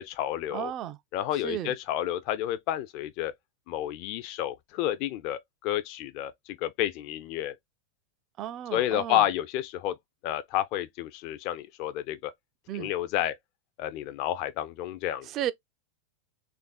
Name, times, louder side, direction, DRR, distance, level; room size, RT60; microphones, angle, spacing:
voice 1, 0.0-0.7 1.1-3.3 3.7-7.6 8.7-10.0 10.2-12.3 12.7-13.4 13.8-15.3, left 12 dB, 45° left, 0.3 m, -30 dB
voice 2, 0.5-1.0 1.4-1.7 8.4-9.2 12.7-12.9 15.3-15.5, right 11 dB, 35° right, 0.3 m, -33 dB
3.3 x 2.4 x 2.2 m
figure-of-eight pair, 90°, 0 cm